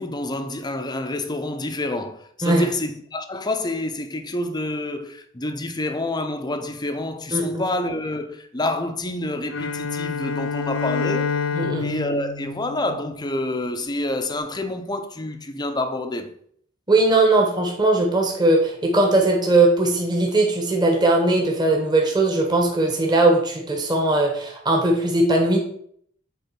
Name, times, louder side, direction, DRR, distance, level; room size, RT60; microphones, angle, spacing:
voice 1, 0.0-11.3 11.8-16.3, left 2 dB, 20° left, 0.7 m, -28 dB
voice 2, 7.3-7.6 11.5-11.9 16.9-25.6, right 2 dB, 20° right, 1.5 m, -19 dB
Bowed string instrument, 9.5-13.7, left 5 dB, 70° left, 0.5 m, -28 dB
8.1 x 3.9 x 5.8 m
head